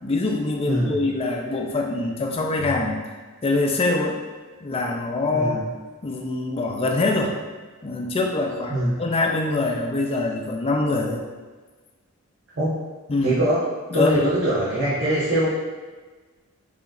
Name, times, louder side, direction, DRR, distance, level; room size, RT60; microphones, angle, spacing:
voice 1, 0.0-3.0 3.4-4.2 4.6-5.6 6.0-7.4 7.8-11.2 13.1-13.4 13.9-14.3, left 2 dB, 25° left, 1 dB, 0.4 m, -24 dB
voice 2, 0.7-1.0 5.3-5.7 8.7-9.0 12.6-12.8 13.2-13.6 13.9-15.5, right 1 dB, 55° right, -11 dB, 1.1 m, -22 dB
4.9 x 3.0 x 2.5 m, 1.4 s
head